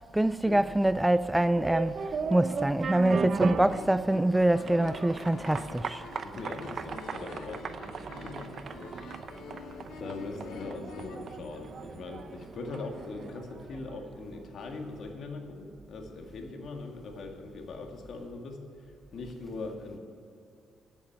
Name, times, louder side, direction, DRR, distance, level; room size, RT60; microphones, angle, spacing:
voice 1, 0.1-2.0 2.3-6.0, right 1 dB, 10° right, 0.3 m, -25 dB
Prague jazz end, 1.4-14.2, right 5 dB, 50° right, 0.7 m, -37 dB
sound 1, 3.5-11.2, left 4 dB, 85° left, 1.2 m, -46 dB
voice 2, 6.2-7.6 8.2-8.6 8.9-9.1 10.0-20.0, left 3 dB, 60° left, 1.9 m, -41 dB
10.0 x 8.3 x 9.2 m
cardioid pair, 90°, 0 cm